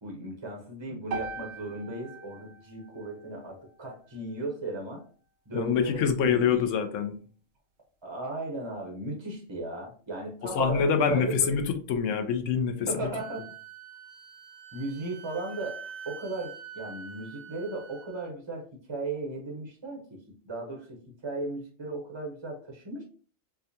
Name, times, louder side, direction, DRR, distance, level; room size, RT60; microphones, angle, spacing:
voice 1, 0.0-5.0 5.5-6.7 8.0-11.5 12.9-13.5 14.7-23.0, right 2 dB, 25° right, 0 dB, 0.7 m, -36 dB
sound 1, 1.1-5.3, right 3 dB, 60° right, 0.7 m, -42 dB
voice 2, 5.5-7.1 10.4-13.1, left 7 dB, 75° left, 8 dB, 0.9 m, -26 dB
Wind instrument woodwind instrument, 13.2-18.3, right 7 dB, 85° right, 1.1 m, -45 dB
4.6 x 2.2 x 2.7 m, 0.40 s
omnidirectional pair, 1.4 m